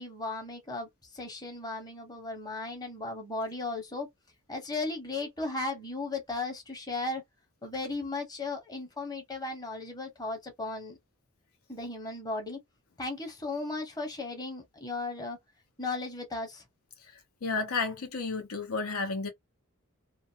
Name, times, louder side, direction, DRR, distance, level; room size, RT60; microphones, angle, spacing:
voice 1, 0.0-4.1 4.5-7.2 7.6-11.0 11.7-12.6 13.0-15.4 15.8-16.6, left 3 dB, 20° left, 0.9 m, -36 dB
voice 2, 17.4-19.3, left 4 dB, 80° left, 0.8 m, -32 dB
2.4 x 2.2 x 2.7 m
head